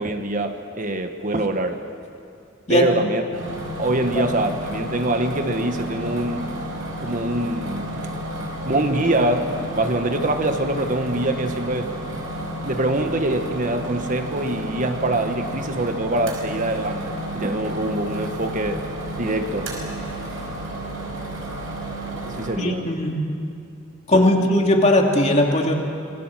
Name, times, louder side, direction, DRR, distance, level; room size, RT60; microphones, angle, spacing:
voice 1, 0.0-1.8 2.7-3.2 3.8-6.5 7.0-8.0 8.6-11.9 12.6-18.9 19.2-19.7 22.2-22.8 24.1-24.3, right 1 dB, 40° right, 6 dB, 1.3 m, -24 dB
sound 1, 3.3-22.5, right 1 dB, 75° right, 5.3 m, -31 dB
voice 2, 22.6-23.3 24.1-25.7, left 1 dB, 35° left, 1 dB, 2.6 m, -18 dB
27.0 x 20.5 x 7.7 m, 2.4 s
head